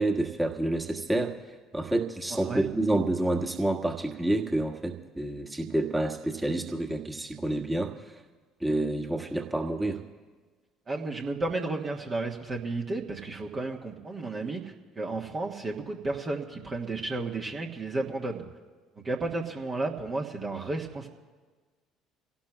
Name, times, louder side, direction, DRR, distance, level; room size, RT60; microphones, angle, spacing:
voice 1, 0.0-8.2 8.6-10.0, right 1 dB, 10° right, 2 dB, 1.6 m, -29 dB
voice 2, 10.9-18.4 19.0-21.1, right 2 dB, 30° right, 1 dB, 1.4 m, -33 dB
28.5 x 17.5 x 2.3 m, 1.4 s
figure-of-eight pair, 55°, 0 cm